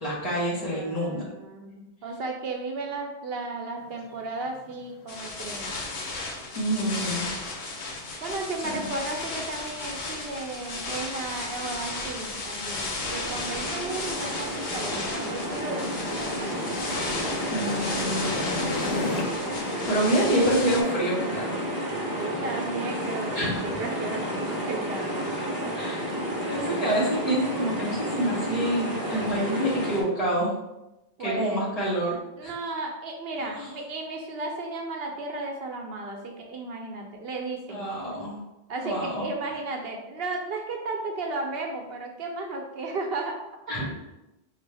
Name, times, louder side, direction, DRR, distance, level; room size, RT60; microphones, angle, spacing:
voice 1, 0.0-1.2 6.5-7.3 8.6-8.9 17.5-19.2 19.9-21.6 23.3-23.6 25.7-26.2 26.4-30.5 31.2-32.5 33.4-33.7 37.7-38.4 38.8-39.3 43.7-43.9, right 1 dB, 35° left, -8 dB, 1.7 m, -27 dB
voice 2, 0.7-5.7 8.2-16.7 22.2-25.4 31.2-31.6 32.4-37.8 38.7-43.4, right 3 dB, 70° right, 2 dB, 0.8 m, -34 dB
sound 1, 3.8-19.2, left 3 dB, 85° left, 0.9 m, -39 dB
sound 2, 5.1-20.8, left 3 dB, 55° left, 0.7 m, -34 dB
sound 3, 13.0-30.0, equal, 20° right, 0.7 m, -31 dB
5.2 x 2.4 x 3.3 m, 0.96 s
omnidirectional pair, 1.1 m